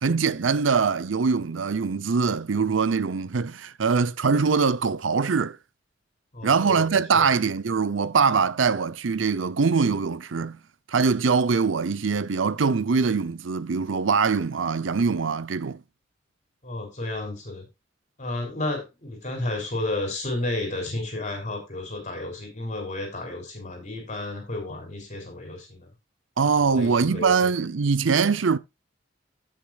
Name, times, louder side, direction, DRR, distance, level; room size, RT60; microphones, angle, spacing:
voice 1, 0.0-5.6 6.4-10.6 10.9-15.8 26.4-28.6, right 5 dB, 80° right, 0.7 m, -23 dB
voice 2, 6.3-7.3 16.6-17.7 18.2-25.9 26.6-27.5, left 2 dB, 40° left, 3.5 m, -32 dB
16.0 x 6.2 x 2.4 m
head